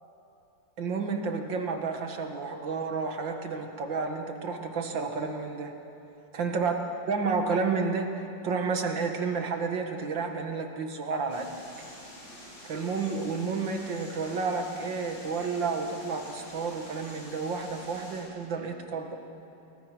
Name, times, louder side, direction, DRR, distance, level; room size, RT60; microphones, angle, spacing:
voice 1, 0.8-5.7 6.3-6.7 7.1-8.1 8.4-11.5 12.6-19.2, right 4 dB, 75° right, 4 dB, 2.4 m, -31 dB
sound 1, 11.3-18.2, equal, 70° left, 8.1 m, -47 dB
29.5 x 21.5 x 6.1 m, 2.8 s
omnidirectional pair, 2.1 m